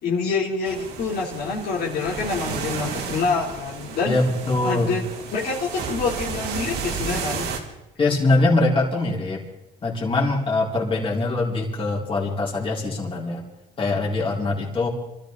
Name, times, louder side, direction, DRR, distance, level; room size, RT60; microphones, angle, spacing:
voice 1, 0.0-4.2 4.6-7.5, left 4 dB, 70° left, -4 dB, 3.6 m, -26 dB
sound 1, 0.6-7.6, right 6 dB, 90° right, 2.6 m, -32 dB
voice 2, 4.1-4.9 8.0-9.4 9.8-13.4 13.8-14.9, left 2 dB, 30° left, -3 dB, 4.2 m, -23 dB
25.0 x 14.0 x 4.1 m, 0.93 s
cardioid pair, 110°, 17 cm